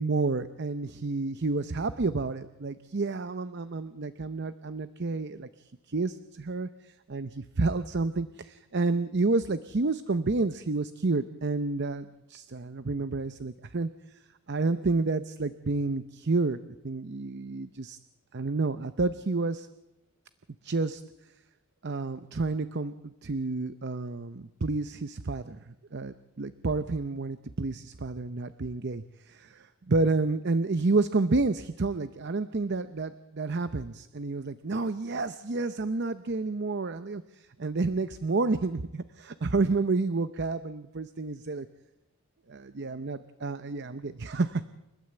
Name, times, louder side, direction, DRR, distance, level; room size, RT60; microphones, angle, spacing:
voice 1, 0.0-14.2 14.5-18.0 18.3-19.7 20.6-21.0 21.8-41.7 42.5-44.6, right 3 dB, 50° right, 12 dB, 0.7 m, -30 dB
29.0 x 13.0 x 7.8 m, 0.95 s
head